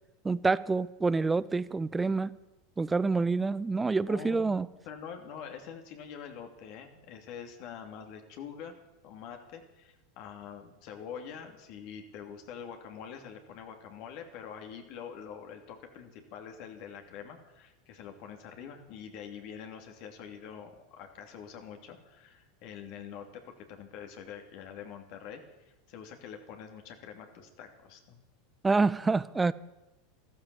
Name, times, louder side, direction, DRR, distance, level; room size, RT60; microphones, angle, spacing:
voice 1, 0.2-2.3 2.8-4.7 28.6-29.5, right 3 dB, 15° right, 19 dB, 0.6 m, -27 dB
voice 2, 4.1-4.6 4.8-8.7 9.0-23.4 23.7-25.4 25.9-28.2, left 7 dB, 60° left, 4 dB, 2.7 m, -45 dB
14.5 x 13.0 x 7.0 m, 0.98 s
hypercardioid pair, 95°, 0 cm